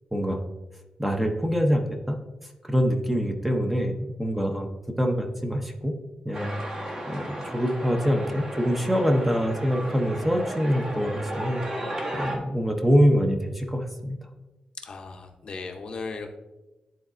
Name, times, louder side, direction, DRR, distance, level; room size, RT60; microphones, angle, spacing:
voice 1, 0.1-0.4 1.0-2.2 2.6-4.7 5.0-6.0 6.3-6.6 7.1-14.2, equal, 5° right, 3 dB, 0.5 m, -25 dB
sound 1, 6.3-12.4, right 1 dB, 40° right, 1.0 m, -34 dB
voice 2, 14.8-16.3, left 4 dB, 45° left, 5 dB, 0.6 m, -37 dB
10.5 x 3.9 x 2.5 m, 1.1 s
wide cardioid pair, 170°, 2 cm